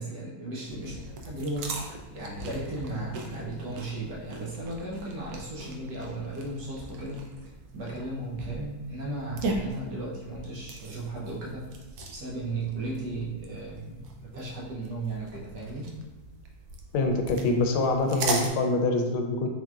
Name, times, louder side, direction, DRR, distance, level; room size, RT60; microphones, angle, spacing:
voice 1, 0.0-7.2 7.7-11.6 12.1-15.9, right 2 dB, 60° right, -5 dB, 1.3 m, -35 dB
sound 1, 0.6-18.5, right 2 dB, 80° right, 0.8 m, -39 dB
voice 2, 16.9-19.5, left 2 dB, 85° left, 4 dB, 1.4 m, -25 dB
4.4 x 3.7 x 2.4 m, 1.2 s
omnidirectional pair, 2.2 m